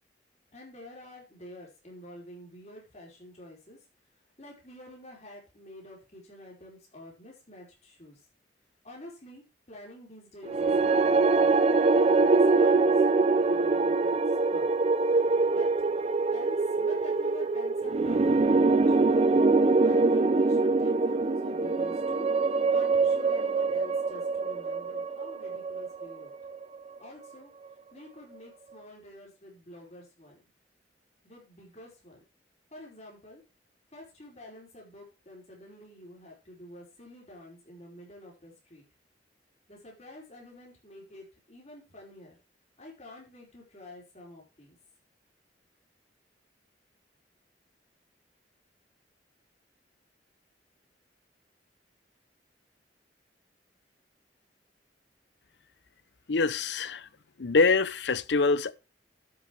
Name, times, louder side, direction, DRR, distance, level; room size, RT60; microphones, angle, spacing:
voice 1, 0.5-3.8 4.4-8.2 8.8-11.6 12.0-14.2 14.4-14.7 15.5-15.7 16.3-19.5 19.8-22.3 22.7-26.3 27.0-27.5 27.9-30.4 31.2-32.2 32.7-33.4 33.9-38.8 39.7-42.4 42.8-44.8, left 1 dB, 40° left, 5.1 m, -48 dB
sound 1, 10.5-26.8, right 3 dB, 35° right, 0.5 m, -24 dB
voice 2, 56.3-57.1 57.4-58.7, left 4 dB, 75° left, 0.7 m, -25 dB
12.5 x 6.0 x 4.8 m
head